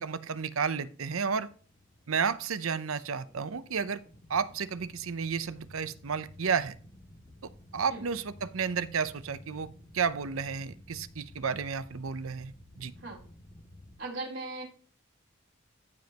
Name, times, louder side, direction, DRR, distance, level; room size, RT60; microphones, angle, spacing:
voice 1, 0.0-1.5 2.1-4.0 4.3-6.8 7.7-9.7 9.9-12.9, right 6 dB, 85° right, 14 dB, 0.7 m, -32 dB
sound 1, 1.5-14.0, left 1 dB, 30° left, 2.1 m, -53 dB
voice 2, 14.0-14.6, right 2 dB, 60° right, -3 dB, 3.6 m, -38 dB
15.0 x 5.3 x 2.9 m, 0.40 s
head